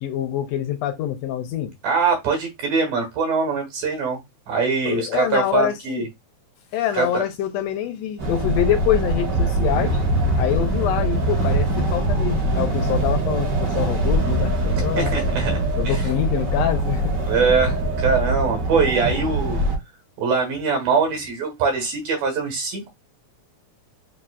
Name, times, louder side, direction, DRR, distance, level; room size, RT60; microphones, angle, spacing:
voice 1, 0.0-1.7 4.8-6.0 6.7-10.0 10.4-15.1 15.8-17.2, left 10 dB, 80° left, 1.6 m, -25 dB
voice 2, 1.8-4.2 4.5-6.1 6.9-7.2 15.0-16.1 17.2-19.6 20.2-22.9, right 5 dB, 90° right, 3.1 m, -22 dB
sound 1, 8.2-19.8, right 1 dB, 55° right, 0.9 m, -22 dB
7.1 x 2.7 x 2.4 m
omnidirectional pair, 3.5 m